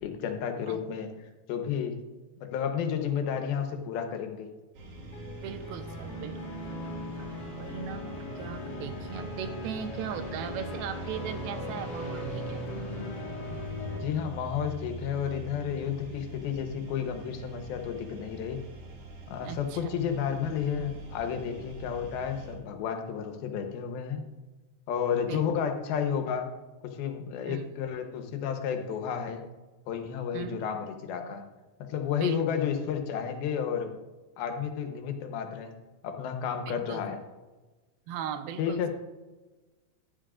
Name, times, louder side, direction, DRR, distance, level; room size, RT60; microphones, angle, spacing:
voice 1, 0.0-2.0 2.4-4.5 14.0-18.6 19.3-24.2 24.9-26.5 26.8-29.4 29.9-31.5 31.8-33.9 34.4-35.7 36.0-37.2 38.6-38.9, left 7 dB, 85° left, 6 dB, 2.9 m, -31 dB
sound 1, 4.7-22.6, right 3 dB, 65° right, 4.1 m, -45 dB
sound 2, 4.9-14.0, left 1 dB, 40° left, 1.5 m, -38 dB
voice 2, 5.4-6.6 7.2-7.3 7.6-12.7 19.5-20.0 25.3-25.4 27.5-27.6 30.3-30.6 32.2-32.4 36.7-37.0 38.1-38.9, right 8 dB, 80° right, 9 dB, 2.6 m, -38 dB
15.0 x 11.0 x 2.5 m, 1.2 s
omnidirectional pair, 4.3 m